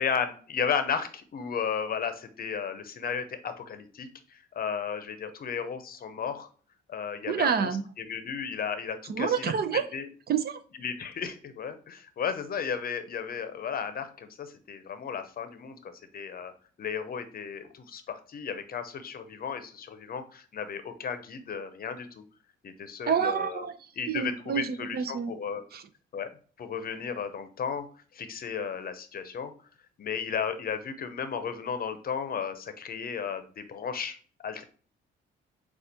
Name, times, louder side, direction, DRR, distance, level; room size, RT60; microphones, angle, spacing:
voice 1, 0.0-6.5 6.9-9.5 9.9-10.1 10.8-16.5 16.8-22.2 22.6-23.7 24.0-25.6 26.1-26.3 26.6-27.9 28.1-29.5 30.0-34.6, left 7 dB, 50° left, 10 dB, 0.7 m, -34 dB
voice 2, 7.3-7.8 9.1-9.8 10.3-10.6 23.1-23.7 24.1-25.3 25.7-25.8, right 7 dB, 50° right, 10 dB, 0.5 m, -28 dB
6.6 x 2.4 x 2.8 m, 0.42 s
cardioid pair, 90°, 20 cm